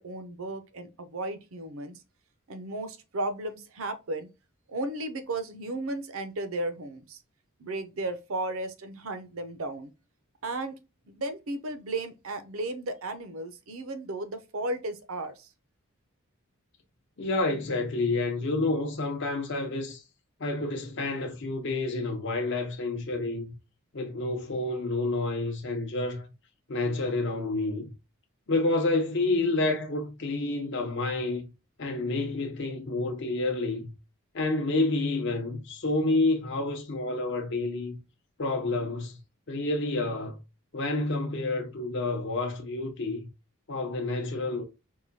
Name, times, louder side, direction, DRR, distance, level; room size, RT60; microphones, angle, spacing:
voice 1, 0.0-2.0 2.5-4.3 4.7-7.2 7.6-9.9 10.4-10.7 11.1-15.5, right 2 dB, 70° right, 0.6 m, -34 dB
voice 2, 17.2-20.0 20.4-23.5 23.9-26.3 26.7-27.9 28.5-31.5 31.8-33.9 34.3-38.0 38.4-39.2 39.5-40.4 40.7-43.3 43.7-44.6, left 2 dB, 55° left, 0.7 m, -29 dB
4.7 x 2.2 x 2.7 m
head